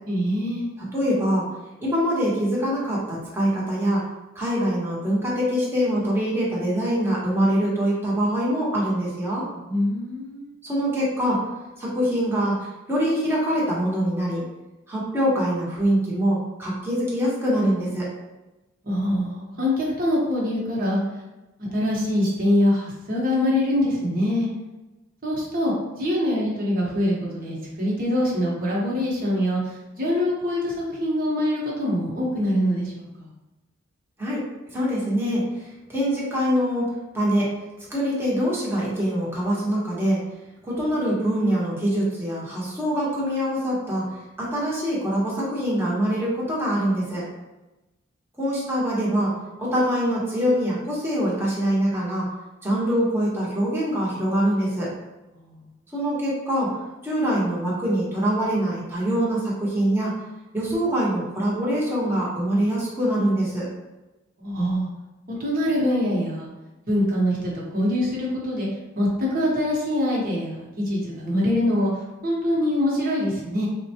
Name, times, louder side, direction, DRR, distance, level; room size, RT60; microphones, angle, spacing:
voice 1, 0.1-0.7 9.5-10.5 18.8-21.0 21.6-24.5 25.2-33.3 55.3-55.6 64.4-64.9 65.3-66.5 66.9-68.7 68.9-71.9 72.2-73.7, left 1 dB, 45° right, -4 dB, 1.0 m, -24 dB
voice 2, 0.9-1.5 1.8-4.0 4.3-9.5 10.6-11.4 11.8-14.4 14.9-18.1 34.2-34.5 34.7-37.5 37.9-40.2 40.6-44.1 44.4-47.2 48.4-49.3 49.6-52.3 52.6-54.9 55.9-56.8 57.0-60.2 60.5-63.7, equal, 10° right, -6 dB, 0.9 m, -24 dB
3.9 x 2.2 x 2.8 m, 1.1 s
head